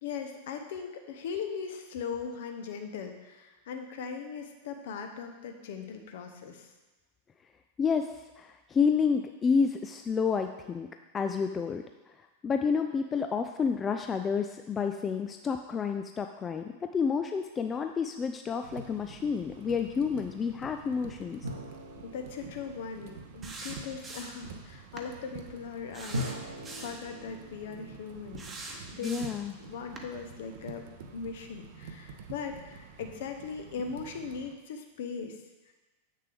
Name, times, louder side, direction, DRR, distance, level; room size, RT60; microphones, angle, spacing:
voice 1, 0.0-6.7 22.0-26.4 26.8-28.5 28.9-30.8 31.1-35.4 35.7-35.8, left 6 dB, 55° left, 6 dB, 0.9 m, -39 dB
voice 2, 7.8-8.1 8.4-10.9 11.1-11.8 12.4-21.4 29.0-29.5, left 6 dB, 20° left, 6 dB, 0.3 m, -29 dB
sound 1, 18.6-34.5, right 5 dB, 50° right, 0.7 m, -48 dB
sound 2, 21.4-23.8 26.1-29.0, left 1 dB, 75° right, 1.0 m, -41 dB
sound 3, 23.4-24.5 25.0-25.1 25.9-27.0 28.4-29.5 30.0-30.1, right 2 dB, 20° right, 1.0 m, -43 dB
8.1 x 6.5 x 3.4 m, 1.1 s
figure-of-eight pair, 90°, 0 cm